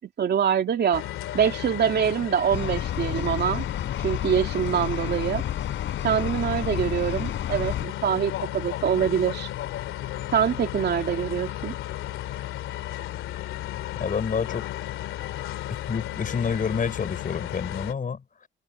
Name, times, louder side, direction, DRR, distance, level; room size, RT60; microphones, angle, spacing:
voice 1, 0.2-1.1 1.3-3.6 4.0-5.4 6.0-9.5 10.3-11.8, right 8 dB, 60° right, 2.7 m, -24 dB
sound 1, 0.9-17.9, left 13 dB, 90° left, 2.8 m, -34 dB
sound 2, 2.5-7.9, left 10 dB, 70° left, 7.0 m, -31 dB
voice 2, 14.0-14.7 15.7-18.5, left 6 dB, 40° left, 6.0 m, -29 dB
cardioid pair, 90°, 20 cm